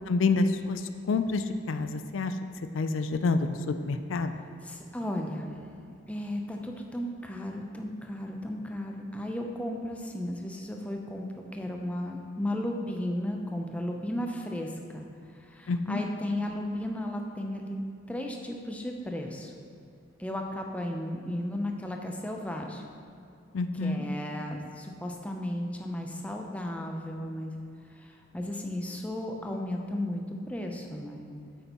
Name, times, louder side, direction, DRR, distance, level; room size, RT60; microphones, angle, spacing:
voice 1, 0.1-2.4 2.7-4.3 15.7-16.0 23.5-24.1, left 3 dB, 80° left, 9 dB, 0.4 m, -28 dB
voice 2, 4.6-5.6 6.1-17.8 18.1-19.5 20.2-22.8 23.8-27.5 27.9-31.3, left 1 dB, 5° left, 1 dB, 0.5 m, -35 dB
8.8 x 8.3 x 3.0 m, 2.5 s
head